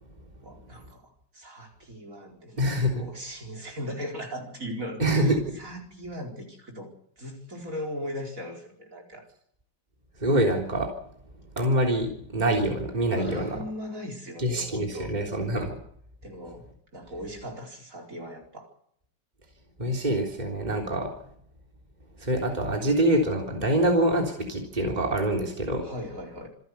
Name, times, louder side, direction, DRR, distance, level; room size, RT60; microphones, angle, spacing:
voice 1, 0.4-2.6 2.9-9.3 13.1-15.1 16.2-16.6 16.9-18.7 25.8-26.5, equal, 50° right, 1 dB, 5.0 m, -38 dB
voice 2, 2.6-3.0 5.0-5.4 10.2-10.9 11.6-13.6 14.4-15.8 19.8-21.1 22.2-25.9, right 1 dB, 25° right, 1 dB, 3.7 m, -25 dB
27.0 x 12.0 x 9.5 m, 0.68 s
omnidirectional pair, 1.9 m